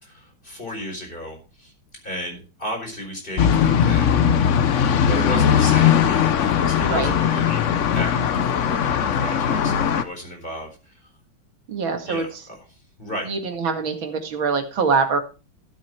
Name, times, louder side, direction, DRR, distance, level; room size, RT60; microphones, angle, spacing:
voice 1, 0.0-1.7 2.0-4.1 4.7-7.6 7.9-10.7 12.0-12.3 13.0-13.3, equal, 25° left, 2 dB, 4.4 m, -34 dB
sound 1, 3.4-10.0, left 8 dB, 60° left, 0.8 m, -19 dB
voice 2, 6.8-7.1 11.7-12.4 13.2-15.2, right 5 dB, 80° right, 5 dB, 2.7 m, -24 dB
13.5 x 7.5 x 4.6 m, 0.32 s
omnidirectional pair, 2.2 m